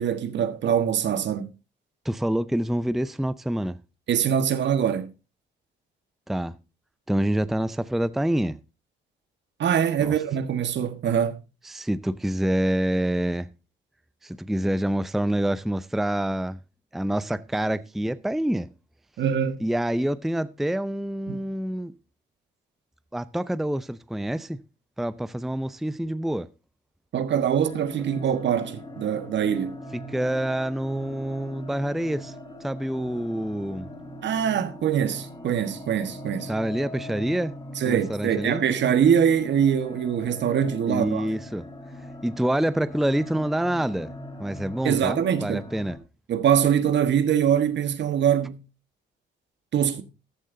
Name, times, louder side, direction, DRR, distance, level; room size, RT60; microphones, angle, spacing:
voice 1, 0.0-1.5 4.1-5.1 9.6-11.4 19.2-19.6 21.3-21.4 27.1-29.8 34.2-36.5 37.8-41.3 44.8-45.6 46.3-48.6 49.7-50.0, right 8 dB, 65° right, 1.4 m, -23 dB
voice 2, 2.0-3.8 6.3-6.6 7.1-8.6 10.0-10.1 11.6-13.5 14.2-16.6 16.9-18.7 19.6-21.9 23.1-24.6 25.0-26.5 29.9-32.3 32.6-33.9 36.5-37.5 37.9-38.6 40.9-41.7 42.2-44.1 44.4-46.0, right 1 dB, ahead, 0.5 m, -27 dB
sound 1, 27.6-46.0, left 1 dB, 25° left, 4.1 m, -41 dB
14.5 x 11.5 x 2.7 m
cardioid pair, 90°, 20 cm